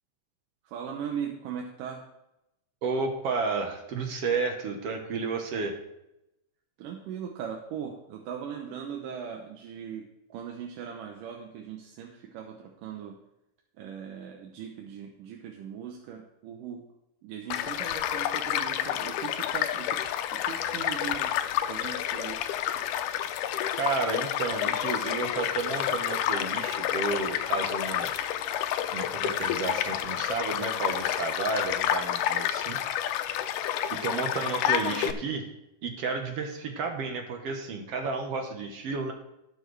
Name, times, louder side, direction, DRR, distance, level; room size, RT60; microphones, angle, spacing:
voice 1, 0.6-2.0 6.8-13.2 13.8-16.8 17.2-20.0 20.3-21.3 21.7-22.4, right 8 dB, 90° right, 1 dB, 2.6 m, -39 dB
voice 2, 2.8-5.7 23.7-28.1 28.9-32.8 33.9-35.5 35.8-39.1, right 4 dB, 60° right, 3 dB, 1.8 m, -32 dB
Child speech kid speaking / Stream / Car passing by, 17.5-35.1, left 11 dB, 80° left, 2.2 m, -29 dB
18.0 x 7.0 x 3.3 m, 0.88 s
omnidirectional pair, 3.7 m